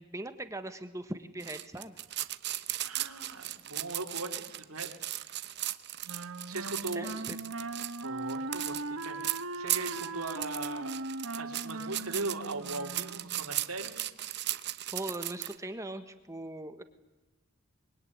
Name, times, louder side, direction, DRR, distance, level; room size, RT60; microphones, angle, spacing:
voice 1, 0.0-2.0 6.9-7.4 14.9-16.8, right 1 dB, 15° right, 9 dB, 1.3 m, -40 dB
sound 1, 1.4-15.6, right 14 dB, 50° right, 1.0 m, -37 dB
voice 2, 2.8-4.9 5.3-5.4 6.4-7.3 8.0-10.9 11.4-13.9, right 2 dB, 90° right, 2 dB, 3.8 m, -39 dB
Wind instrument woodwind instrument, 6.1-13.4, right 2 dB, 65° right, 1.5 m, -39 dB
25.0 x 22.5 x 9.9 m, 1.1 s
head